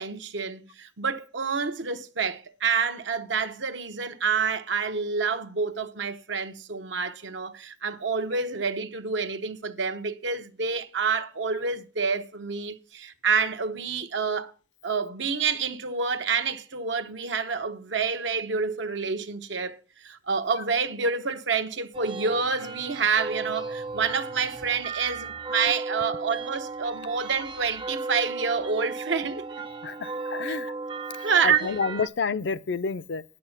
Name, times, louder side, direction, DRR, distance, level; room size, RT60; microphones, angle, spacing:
voice 1, 0.0-14.5 14.8-19.8 20.0-29.4 30.5-30.6 31.2-31.8, right 5 dB, 80° right, 1.0 m, -28 dB
sound 1, 21.9-32.1, right 3 dB, 25° right, 0.5 m, -35 dB
voice 2, 29.8-30.7 31.2-33.2, left 5 dB, 70° left, 0.5 m, -29 dB
9.7 x 7.7 x 5.8 m
head